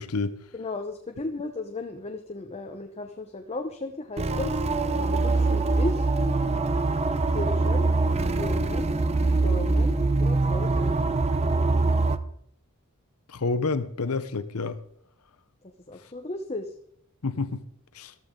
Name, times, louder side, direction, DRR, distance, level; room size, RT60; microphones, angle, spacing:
voice 1, 0.0-0.4 13.3-14.8 17.2-17.6 17.9-18.1, left 3 dB, 75° left, 11 dB, 0.8 m, -28 dB
voice 2, 0.5-4.5 4.9-6.0 7.3-7.9 8.4-8.9 9.4-11.0 15.9-16.7, left 2 dB, 30° left, 5 dB, 0.9 m, -35 dB
sound 1, 4.2-12.2, right 3 dB, 30° right, 0.6 m, -23 dB
14.5 x 13.5 x 3.8 m, 0.69 s
head